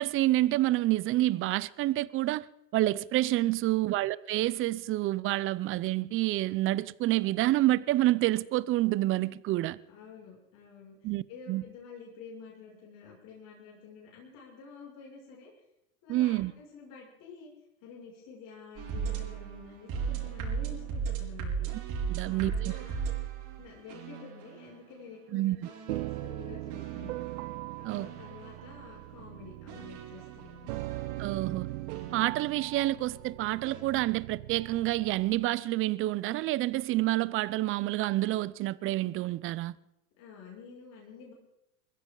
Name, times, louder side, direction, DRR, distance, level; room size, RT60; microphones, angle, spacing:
voice 1, 0.0-2.4 2.7-9.8 11.0-11.2 11.5-11.6 16.1-16.5 22.1-22.7 25.3-25.6 27.8-28.1 31.2-31.7 32.1-39.8, right 16 dB, 30° right, 0.6 m, -28 dB
voice 2, 3.2-3.5 9.9-15.5 16.0-17.5 17.8-21.7 22.1-23.1 23.6-25.6 25.9-27.2 27.8-30.8 40.2-41.3, left 5 dB, 50° left, 6.7 m, -49 dB
sound 1, 18.8-24.8 25.6-28.9 29.7-32.8 33.6-33.8, right 6 dB, 45° right, 4.9 m, -37 dB
sound 2, 25.9-35.5, right 19 dB, 65° right, 0.8 m, -40 dB
22.5 x 15.5 x 4.0 m
supercardioid pair, 120°, 42 cm